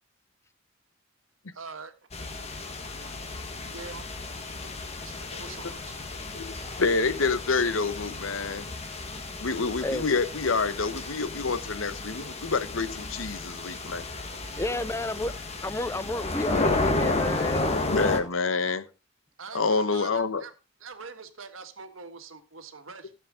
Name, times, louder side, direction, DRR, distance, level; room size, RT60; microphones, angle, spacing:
voice 1, 1.5-1.9 3.7-4.0 5.2-6.0 14.3-14.9 19.4-20.5 20.8-23.1, right 4 dB, 80° right, 1.6 m, -43 dB
sound 1, 2.1-18.2, left 2 dB, 35° left, 1.6 m, -32 dB
voice 2, 6.3-8.7 9.4-14.1 17.9-18.9 19.5-20.4, left 4 dB, 85° left, 1.0 m, -27 dB
voice 3, 14.6-15.3 15.6-17.8, left 2 dB, 15° left, 0.5 m, -31 dB
14.0 x 7.6 x 3.6 m
head